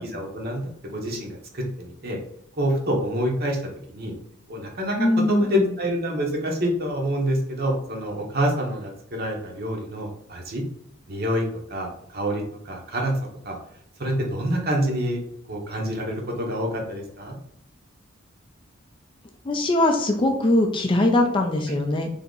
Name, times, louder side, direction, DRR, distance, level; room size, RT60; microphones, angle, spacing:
voice 1, 0.0-2.2 2.6-3.6 3.9-4.1 4.5-10.6 11.1-11.4 11.7-13.2 13.4-13.6 14.0-15.2 15.5-17.3 21.7-21.8, equal, 50° right, 0 dB, 0.9 m, -27 dB
voice 2, 5.0-5.8 19.4-22.1, left 1 dB, 25° left, 4 dB, 0.4 m, -21 dB
3.5 x 2.8 x 3.9 m, 0.67 s
head